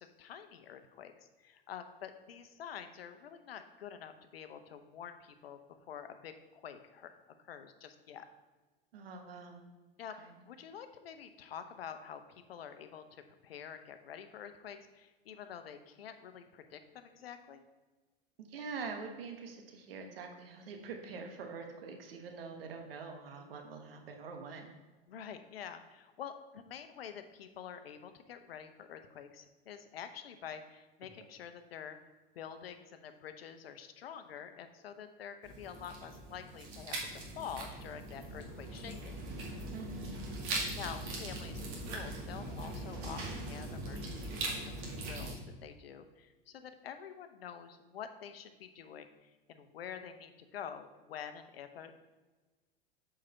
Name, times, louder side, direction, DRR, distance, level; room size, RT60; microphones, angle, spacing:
voice 1, 0.0-5.6 5.9-7.1 7.5-8.3 10.0-10.1 10.4-17.6 25.1-32.0 32.3-37.0 37.4-39.1 40.7-52.1, left 8 dB, 80° left, 9 dB, 0.8 m, -47 dB
voice 2, 8.9-9.6 10.2-10.4 18.4-24.7 39.7-40.2, right 5 dB, 75° right, 4 dB, 1.3 m, -45 dB
sound 1, 35.4-45.3, right 2 dB, 50° right, 2.2 m, -40 dB
7.6 x 5.1 x 4.3 m, 1.2 s
hypercardioid pair, 90°, 29 cm